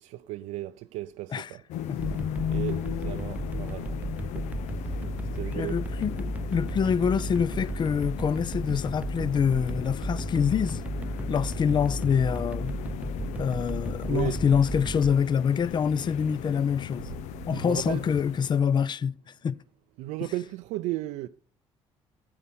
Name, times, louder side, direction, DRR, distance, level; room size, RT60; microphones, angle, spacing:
voice 1, 0.0-1.6 1.9-2.2 2.5-4.5 4.7-5.0 5.3-5.8 14.1-14.4 17.5-18.0 20.0-21.3, right 16 dB, 85° right, 0.4 m, -35 dB
sound 1, 1.7-18.7, left 11 dB, 80° left, 0.6 m, -37 dB
sound 2, 2.0-15.1, right 1 dB, 10° right, 0.6 m, -34 dB
voice 2, 5.6-10.8 11.3-12.8 13.3-17.1 17.5-19.2 19.4-19.6, left 7 dB, 40° left, 0.5 m, -26 dB
9.7 x 8.6 x 5.4 m
cardioid pair, 90°, 12 cm